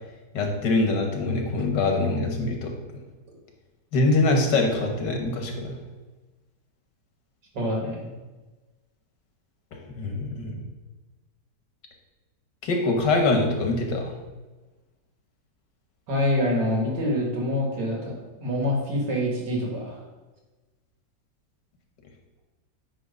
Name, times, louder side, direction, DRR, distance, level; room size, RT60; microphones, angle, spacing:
voice 1, 0.3-2.7 3.9-5.8 9.7-10.6 12.6-14.2, left 2 dB, 90° left, 2 dB, 1.8 m, -24 dB
voice 2, 7.5-8.1 16.1-20.0, left 1 dB, 85° right, -2 dB, 2.3 m, -26 dB
9.3 x 3.1 x 5.2 m, 1.2 s
omnidirectional pair, 1.8 m